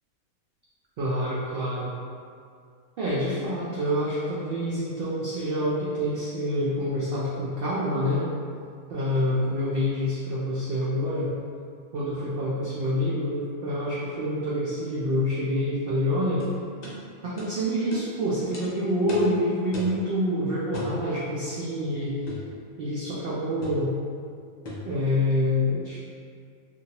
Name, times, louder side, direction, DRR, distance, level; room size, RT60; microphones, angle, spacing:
voice 1, 1.0-1.9 3.0-8.3 8.9-11.3 11.9-16.4 17.2-22.2 22.8-23.9 24.9-26.0, equal, 85° right, -7 dB, 0.5 m, -27 dB
sound 1, 16.4-16.5 16.8-17.0 17.4-17.5 17.9-18.1 18.5-18.7 19.1-19.3 19.7-20.0 20.7-21.0 22.3-22.5 23.6-23.9 24.6-24.9, left 1 dB, 75° left, 0.4 m, -36 dB
2.9 x 2.6 x 2.8 m, 2.3 s
omnidirectional pair, 1.5 m